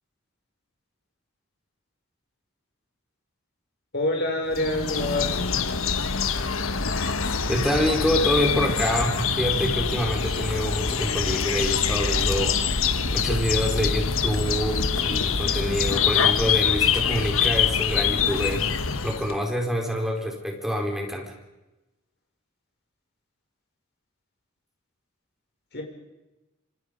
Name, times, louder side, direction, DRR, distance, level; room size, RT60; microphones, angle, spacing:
voice 1, 3.9-5.5 25.7-25.8, left 2 dB, 55° left, 2 dB, 6.0 m, -26 dB
sound 1, 4.5-19.4, left 6 dB, 75° left, 1.4 m, -25 dB
voice 2, 7.5-12.6 13.1-18.7 19.0-21.3, equal, ahead, 1 dB, 4.5 m, -26 dB
27.0 x 25.5 x 5.3 m, 1.0 s
head